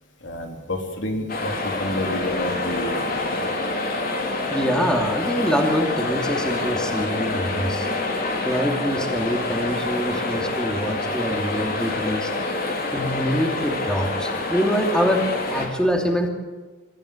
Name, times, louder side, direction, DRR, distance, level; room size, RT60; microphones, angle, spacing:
voice 1, 0.2-3.5, left 1 dB, 75° left, 3 dB, 3.4 m, -29 dB
sound 1, 1.3-15.7, left 2 dB, 50° left, 3.7 m, -26 dB
voice 2, 4.5-8.2 8.4-12.3 12.9-16.3, equal, 5° left, 2 dB, 2.6 m, -25 dB
25.0 x 14.5 x 8.6 m, 1.3 s
head